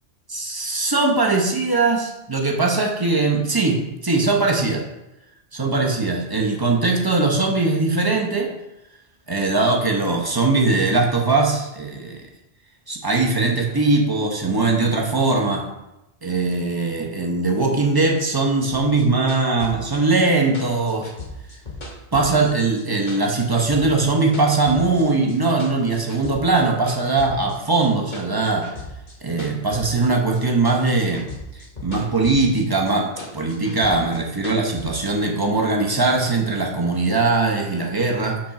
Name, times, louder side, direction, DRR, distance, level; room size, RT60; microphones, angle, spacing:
voice 1, 0.3-4.8 5.5-8.5 9.3-12.2 12.9-15.6 16.2-21.1 22.1-28.7 29.2-31.3 31.8-38.4, right 3 dB, 20° right, 0 dB, 0.9 m, -20 dB
sound 1, 18.7-22.8 23.1-25.0 25.3-26.6 26.9-30.4 30.7-32.6 32.9-34.9, left 2 dB, 45° left, 1.2 m, -37 dB
5.1 x 4.3 x 5.9 m, 0.93 s
omnidirectional pair, 1.1 m